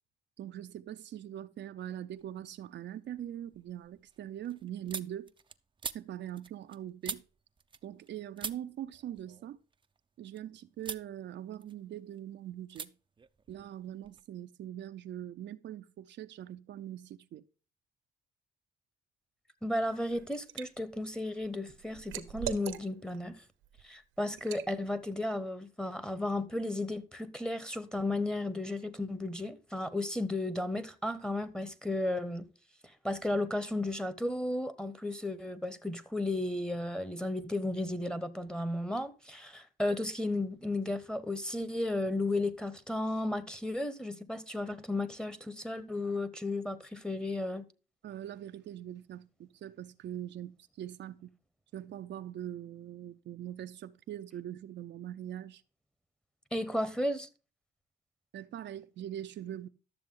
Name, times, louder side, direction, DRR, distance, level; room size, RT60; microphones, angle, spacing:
voice 1, 0.4-5.3 5.9-7.2 7.8-9.6 10.2-12.9 13.5-17.4 48.0-51.3 51.7-55.6 58.3-59.7, right 11 dB, 65° right, 0.6 m, -42 dB
sound 1, 2.1-2.7 3.1-8.1 8.4-10.4 10.8-11.1 11.5-12.2 12.7-12.9 13.2-14.2, right 5 dB, 25° right, 0.6 m, -45 dB
voice 2, 19.6-23.4 23.8-32.4 33.0-47.6 56.5-57.3, left 1 dB, 5° left, 1.1 m, -34 dB
Liquid, 19.8-20.7 21.1-23.2 23.6-23.8 24.4-24.7, right 11 dB, 85° right, 1.1 m, -41 dB
12.0 x 7.1 x 3.8 m
cardioid pair, 90°, 20 cm